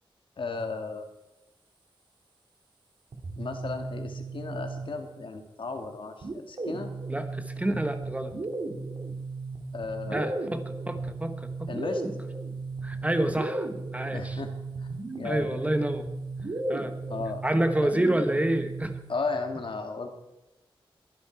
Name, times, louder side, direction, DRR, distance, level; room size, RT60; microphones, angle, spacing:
voice 1, 0.4-1.1 3.4-6.9 9.7-10.4 11.7-12.0 14.1-14.5 14.8-14.9 15.1-15.6 17.1-17.4 17.8-17.9 19.1-20.1, left 4 dB, 65° left, 6 dB, 2.1 m, -35 dB
sound 1, 3.1-5.2 6.2-19.1, right 3 dB, 60° right, 2.5 m, -36 dB
voice 2, 7.1-8.3 10.1-11.7 12.8-14.4 15.2-16.0 16.7-16.9 17.4-18.9, right 1 dB, 15° right, 8 dB, 1.2 m, -28 dB
22.0 x 10.5 x 4.6 m, 0.94 s
wide cardioid pair, 95°, 10 cm